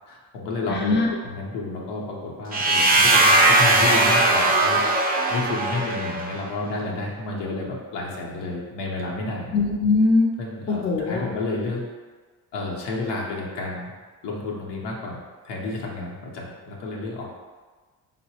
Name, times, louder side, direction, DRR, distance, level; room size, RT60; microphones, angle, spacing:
voice 1, 0.1-9.5 10.4-11.8 12.5-13.9 14.2-15.2 15.4-17.4, left 2 dB, 85° left, -3 dB, 0.8 m, -31 dB
voice 2, 0.7-1.1 9.5-10.3 10.7-11.3, left 3 dB, 25° left, 0 dB, 0.5 m, -21 dB
sound 1, 2.5-6.4, right 2 dB, 25° right, 0.4 m, -19 dB
3.8 x 2.0 x 2.7 m, 1.4 s
cardioid pair, 70°, 41 cm